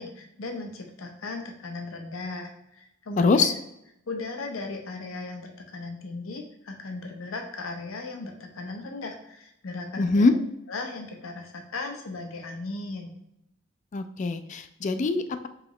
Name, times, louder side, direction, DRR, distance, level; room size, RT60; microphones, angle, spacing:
voice 1, 0.0-3.5 4.1-10.3 10.7-13.1, left 3 dB, 80° left, 4 dB, 0.7 m, -37 dB
voice 2, 3.2-3.5 10.0-10.3 13.9-15.5, left 3 dB, 35° left, 10 dB, 0.3 m, -23 dB
4.9 x 2.9 x 3.1 m, 0.80 s
head